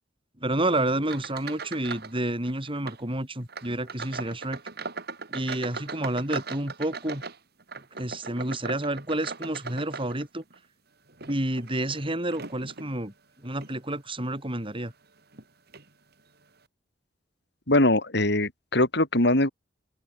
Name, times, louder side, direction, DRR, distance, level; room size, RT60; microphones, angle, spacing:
voice 1, 0.4-4.9 5.3-7.2 8.0-10.4 11.3-13.1 13.4-14.9, right 1 dB, 30° right, 5.7 m, -29 dB
sound 1, 1.0-2.2 2.4-3.0 3.5-10.6 11.1-12.9 13.5-13.8 14.3-14.4 15.3-15.4 15.7-15.9, right 4 dB, 60° right, 4.1 m, -39 dB
voice 2, 17.7-19.5, left 1 dB, 65° left, 5.2 m, -22 dB
open air
head